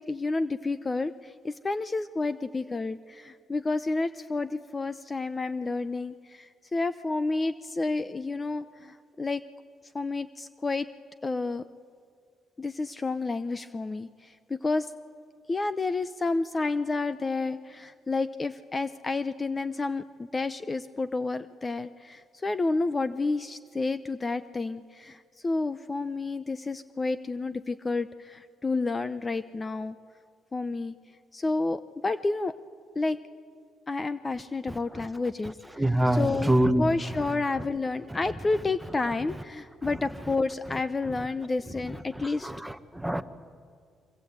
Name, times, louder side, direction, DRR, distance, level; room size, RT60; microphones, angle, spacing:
voice 1, 0.1-9.4 9.9-10.9 11.2-11.6 12.6-14.9 15.5-30.0 30.5-30.9 31.3-32.5 33.0-33.2 33.9-42.5, left 3 dB, 25° left, 0.7 m, -30 dB
voice 2, 35.8-36.9 42.4-43.2, right 1 dB, 5° right, 1.3 m, -24 dB
27.5 x 24.5 x 8.2 m
cardioid pair, 90°, 0 cm